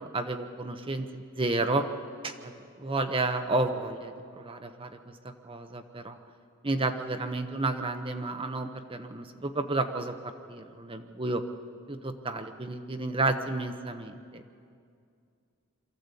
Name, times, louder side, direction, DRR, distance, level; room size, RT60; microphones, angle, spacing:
voice 1, 0.0-1.8 2.2-2.5 2.8-6.2 6.6-10.2 10.5-11.4 11.9-14.4, right 2 dB, 25° right, 7 dB, 0.9 m, -31 dB
23.5 x 14.5 x 8.3 m, 2.3 s
head